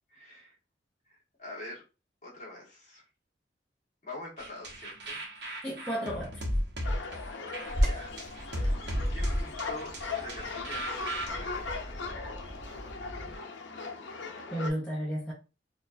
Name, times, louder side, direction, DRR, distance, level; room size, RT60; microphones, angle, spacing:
voice 1, 0.1-0.6 1.1-1.8 2.2-3.0 4.0-5.5 7.8-8.1 8.6-8.7 9.1-12.2, left 1 dB, 40° left, 1.6 m, -45 dB
sound 1, 4.4-11.3, equal, 70° right, 1.0 m, -35 dB
voice 2, 5.6-6.4 14.5-15.3, equal, 5° left, 0.8 m, -33 dB
sound 2, 6.8-14.7, left 4 dB, 90° left, 0.7 m, -39 dB
Bird vocalization bird call bird song, 7.7-13.3, equal, 15° right, 1.1 m, -34 dB
4.3 x 2.7 x 2.6 m
head